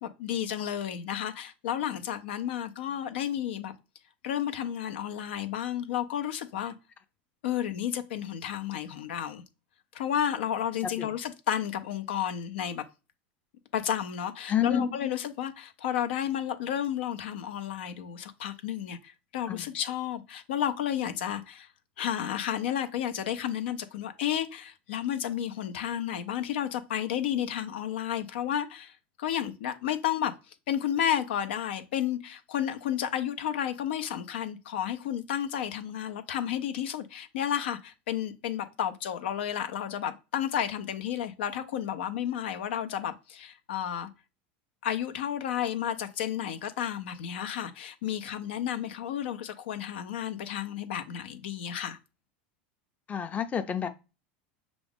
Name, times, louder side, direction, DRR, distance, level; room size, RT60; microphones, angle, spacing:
voice 1, 0.0-3.7 4.2-6.7 7.4-9.4 9.9-12.8 13.7-21.7 22.0-44.1 44.8-52.0, left 10 dB, 80° left, 0.6 m, -32 dB
voice 2, 14.5-15.0 19.5-19.7 53.1-53.9, left 8 dB, 25° left, 0.6 m, -29 dB
5.9 x 2.5 x 3.5 m
supercardioid pair, 110°, 6 cm